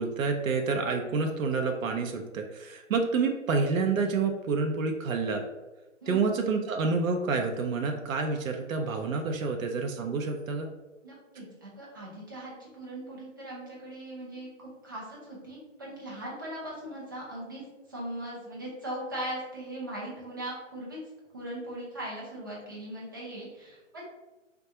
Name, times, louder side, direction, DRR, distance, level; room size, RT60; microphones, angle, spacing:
voice 1, 0.0-5.4 6.1-10.7, right 4 dB, 90° right, 4 dB, 0.5 m, -28 dB
voice 2, 11.0-17.6 17.9-21.0 21.3-24.1, right 1 dB, 20° right, -6 dB, 0.4 m, -39 dB
3.5 x 2.2 x 2.8 m, 1.1 s
hypercardioid pair, 150°, 39 cm